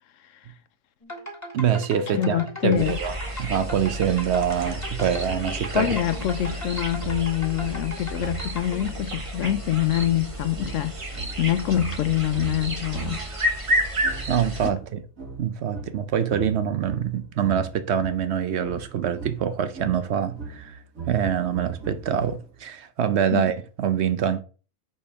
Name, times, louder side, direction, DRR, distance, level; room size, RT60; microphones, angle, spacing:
sound 1, 1.0-8.9, equal, 10° left, 1.8 m, -39 dB
voice 1, 1.5-5.9 14.3-15.0 15.4-20.8 21.1-24.4, right 8 dB, 65° right, 0.8 m, -25 dB
voice 2, 2.1-3.0 5.7-13.2 14.6-14.7 23.3-23.4, left 12 dB, 75° left, 0.9 m, -25 dB
sound 2, 2.8-14.7, equal, 25° right, 0.9 m, -31 dB
sound 3, 4.6-13.4 14.0-22.7, right 6 dB, 85° right, 2.3 m, -39 dB
5.1 x 4.4 x 5.6 m
omnidirectional pair, 1.4 m